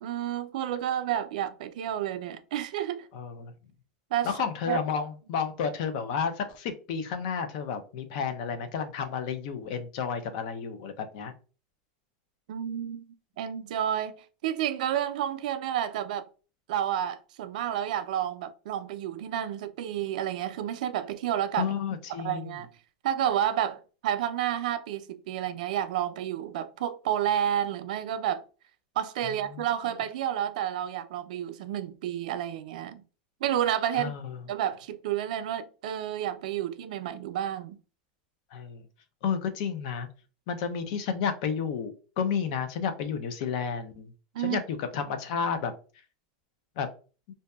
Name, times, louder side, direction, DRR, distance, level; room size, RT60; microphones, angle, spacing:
voice 1, 0.0-3.1 4.1-4.3 4.7-4.8 12.5-13.0 13.4-14.1 14.4-16.3 16.7-21.7 22.2-22.7 23.0-28.4 29.0-33.0 33.4-34.1 34.5-37.8 44.3-44.6, right 10 dB, 75° right, 0.3 m, -30 dB
voice 2, 3.1-3.5 4.2-11.3 21.6-22.6 29.2-29.6 33.9-34.4 38.5-38.8 39.2-40.1 40.5-44.1 44.4-45.7 46.8-46.9, left 6 dB, 60° left, 0.5 m, -31 dB
2.6 x 2.2 x 2.2 m
supercardioid pair, 145°, 4 cm